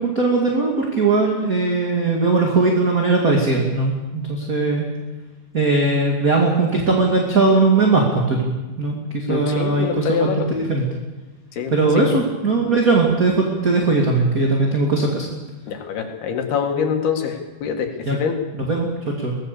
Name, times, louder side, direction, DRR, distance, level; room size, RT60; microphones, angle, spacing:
voice 1, 0.0-4.8 5.5-8.5 8.8-10.8 11.7-15.2 18.1-18.2 18.7-18.9 19.2-19.4, right 3 dB, 25° right, 0 dB, 2.2 m, -19 dB
voice 2, 9.3-10.5 11.5-12.2 15.7-18.4, left 7 dB, 90° left, 4 dB, 4.0 m, -25 dB
23.5 x 18.5 x 6.9 m, 1.2 s
omnidirectional pair, 4.3 m